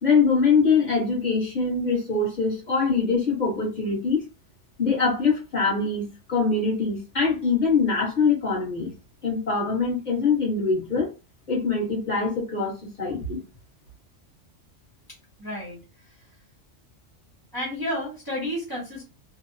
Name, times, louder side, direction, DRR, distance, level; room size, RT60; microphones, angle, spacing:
voice 1, 0.0-4.2 4.8-8.9 9.2-11.1 11.5-13.4, left 4 dB, 40° left, -3 dB, 1.0 m, -23 dB
voice 2, 15.4-15.8 17.5-19.0, left 1 dB, 20° right, -4 dB, 0.6 m, -31 dB
2.6 x 2.0 x 2.6 m, 0.30 s
omnidirectional pair, 1.3 m